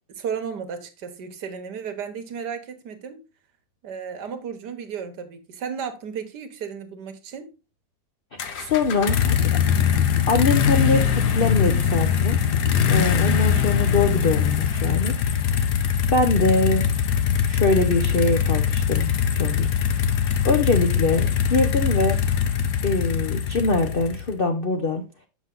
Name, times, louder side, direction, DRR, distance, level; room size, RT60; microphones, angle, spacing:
voice 1, 0.1-3.2 3.8-7.5, right 7 dB, 60° right, 1.6 m, -34 dB
voice 2, 8.4-9.6 10.3-12.4 12.9-15.7 16.1-16.9 17.4-19.1 19.4-19.7 20.4-22.2 22.8-25.0, left 3 dB, 85° left, 0.4 m, -23 dB
sound 1, 8.4-24.4, left 8 dB, 60° left, 1.3 m, -22 dB
7.3 x 6.2 x 3.7 m
omnidirectional pair, 2.1 m